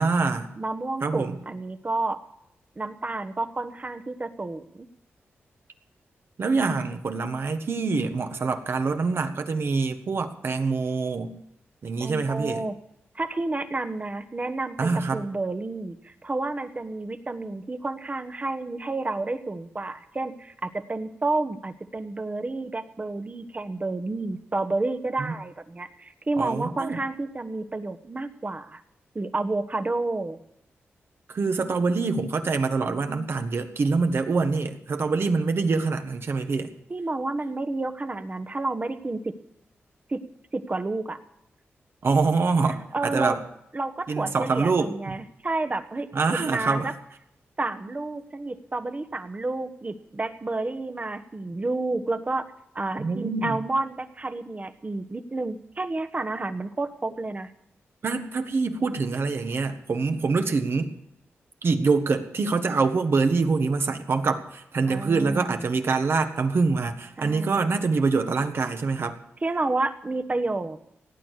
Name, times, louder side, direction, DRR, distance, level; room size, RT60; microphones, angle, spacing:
voice 1, 0.0-0.5 1.0-1.4 6.4-11.4 11.8-12.7 14.8-15.2 25.2-25.3 26.4-27.0 31.3-36.7 42.0-43.4 44.1-45.2 46.1-46.9 53.0-53.6 58.0-60.9 61.6-69.2, right 4 dB, 60° right, 7 dB, 1.5 m, -25 dB
voice 2, 0.6-2.2 2.8-4.9 12.0-12.8 13.1-28.8 29.1-30.4 36.9-39.4 40.1-40.2 40.5-41.2 42.9-43.4 43.7-46.9 47.6-52.5 52.7-57.5 64.9-65.7 67.2-67.7 69.4-70.8, right 2 dB, 30° right, 9 dB, 1.2 m, -30 dB
17.5 x 9.1 x 6.6 m, 0.80 s
cardioid pair, 70°, 5 cm